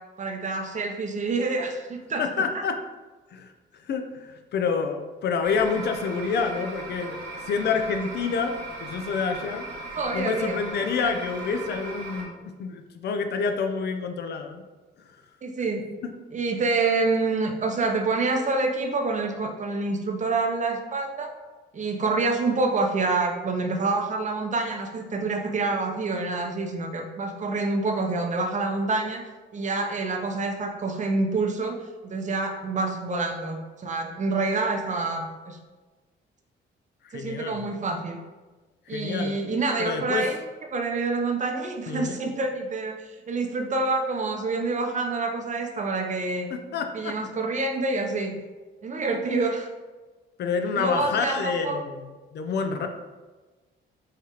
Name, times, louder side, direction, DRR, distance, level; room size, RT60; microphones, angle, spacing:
voice 1, 0.2-2.2 10.0-10.6 11.0-11.1 15.4-15.8 16.3-21.3 21.7-29.2 29.5-31.8 32.0-35.6 37.1-38.2 38.9-40.4 40.7-46.5 46.9-48.3 48.8-49.7 50.7-51.8, right 3 dB, 40° right, 3 dB, 0.6 m, -27 dB
voice 2, 2.2-2.8 3.3-3.5 3.9-7.2 7.4-8.5 8.8-9.7 10.1-14.6 16.0-16.1 37.0-37.7 38.9-39.3 39.8-40.3 41.9-42.2 46.5-47.2 50.4-52.9, left 5 dB, 55° left, 6 dB, 0.4 m, -28 dB
sound 1, 5.4-12.2, right 2 dB, 65° right, 1.1 m, -38 dB
4.6 x 2.4 x 2.9 m, 1.3 s
cardioid pair, 90°, 20 cm